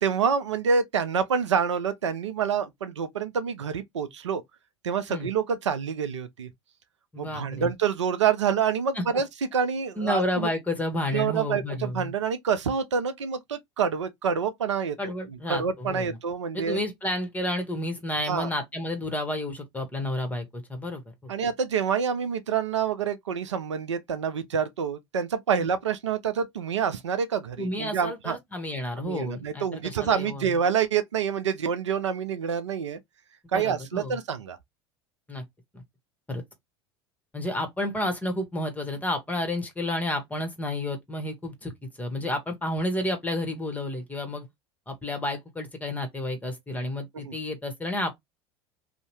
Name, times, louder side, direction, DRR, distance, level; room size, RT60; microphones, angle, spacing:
voice 1, 0.0-4.4 4.8-6.5 7.2-9.3 9.5-10.5 11.1-15.0 15.5-16.8 18.3-18.5 21.3-28.4 29.0-33.0 33.5-34.6 47.1-47.3, right 7 dB, 80° right, 0.5 m, -27 dB
voice 2, 7.1-7.7 8.9-9.0 10.0-12.1 15.0-16.2 16.5-21.3 25.6-25.7 27.6-30.6 33.5-34.2 35.3-35.4 35.7-35.8 36.3-36.4 37.3-41.7 42.0-44.5 44.9-48.1, left 1 dB, 10° left, 1.1 m, -31 dB
2.7 x 2.0 x 3.0 m
figure-of-eight pair, 75°, 15 cm